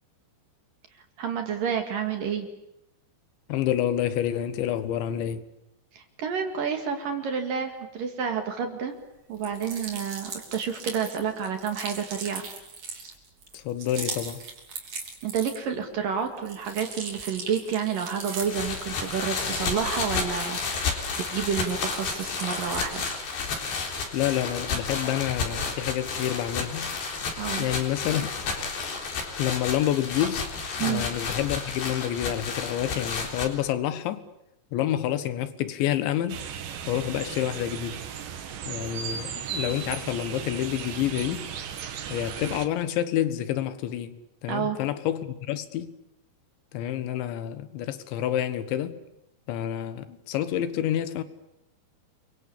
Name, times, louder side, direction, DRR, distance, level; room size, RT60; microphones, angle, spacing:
voice 1, 1.2-2.5 5.9-8.9 9.3-12.5 15.2-23.1 27.4-27.7 30.8-31.0 44.5-44.8, right 7 dB, 55° right, 3.3 m, -29 dB
voice 2, 3.5-5.4 13.5-14.4 24.1-27.0 27.6-28.5 29.4-30.4 30.8-34.2 34.7-36.4 36.9-38.0 38.7-41.5 42.1-44.2 44.4-45.9 46.7-48.9 49.5-51.2, left 11 dB, 80° left, 3.7 m, -28 dB
sound 1, 9.3-15.8 16.2-21.1 21.4-23.3, right 4 dB, 40° right, 4.3 m, -39 dB
sound 2, 18.5-33.5, left 4 dB, 65° left, 5.8 m, -31 dB
sound 3, 36.3-42.7, right 7 dB, 75° right, 4.2 m, -36 dB
29.5 x 23.5 x 8.6 m
omnidirectional pair, 5.2 m